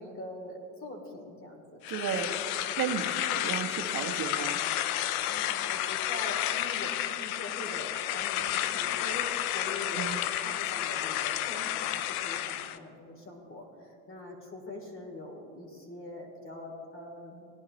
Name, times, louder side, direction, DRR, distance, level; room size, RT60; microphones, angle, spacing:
voice 1, 0.0-2.3 3.0-3.2 5.3-10.1 10.4-17.4, left 1 dB, 30° left, 2 dB, 3.0 m, -43 dB
sound 1, 1.8-12.8, left 12 dB, 75° left, 0.7 m, -31 dB
voice 2, 1.9-2.3 2.5-4.6 9.9-10.2, right 8 dB, 50° right, 4 dB, 1.4 m, -34 dB
18.0 x 11.0 x 3.2 m, 2.5 s
supercardioid pair, 90°, 43 cm